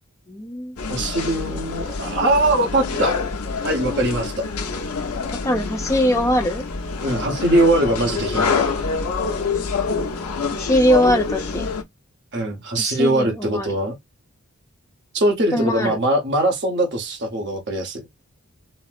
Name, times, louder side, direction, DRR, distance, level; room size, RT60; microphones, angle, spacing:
voice 1, 0.3-0.7 5.3-6.6 10.5-11.7 12.8-13.7 15.5-16.0, equal, 15° left, 0.6 m, -21 dB
sound 1, 0.8-11.8, left 4 dB, 80° left, 0.9 m, -26 dB
voice 2, 0.9-3.2 3.6-4.4 7.0-8.7 12.3-14.0 15.1-18.0, right 1 dB, 50° right, 1.0 m, -21 dB
4.1 x 2.0 x 2.4 m
head